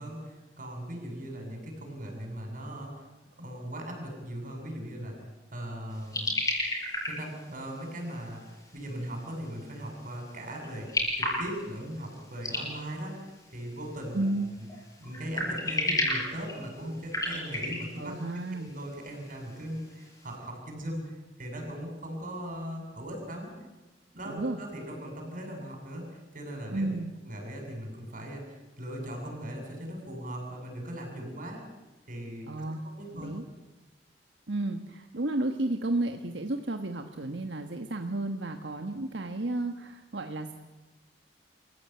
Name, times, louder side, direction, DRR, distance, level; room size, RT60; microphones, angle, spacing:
voice 1, 0.0-3.1 3.4-5.2 5.5-6.3 7.0-8.4 8.7-14.3 14.6-14.7 15.0-18.1 18.5-23.5 24.1-26.9 27.2-31.6 32.1-32.5 32.8-33.3, equal, 50° right, 2 dB, 7.6 m, -39 dB
sound 1, 5.9-20.4, left 1 dB, 20° left, 7.6 m, -36 dB
voice 2, 14.1-14.5 18.0-18.7 24.3-24.6 26.7-27.1 32.5-33.4 34.5-40.5, right 2 dB, 90° right, 5 dB, 1.5 m, -32 dB
27.0 x 15.5 x 9.2 m, 1.1 s
head